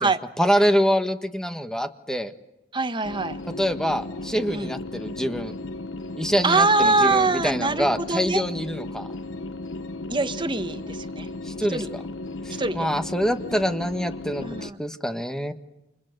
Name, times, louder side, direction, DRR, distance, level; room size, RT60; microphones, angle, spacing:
voice 1, 0.4-2.3 3.6-5.5 6.2-9.1 11.4-11.8 12.4-15.5, equal, 5° left, 7 dB, 1.3 m, -25 dB
voice 2, 2.7-3.4 4.5-4.7 6.4-8.4 10.1-11.3 11.7-11.9 12.6-12.9 14.4-14.8, right 3 dB, 25° right, 9 dB, 1.5 m, -23 dB
sound 1, 3.0-14.7, left 2 dB, 75° left, 1.1 m, -35 dB
29.5 x 28.0 x 6.7 m, 0.95 s
head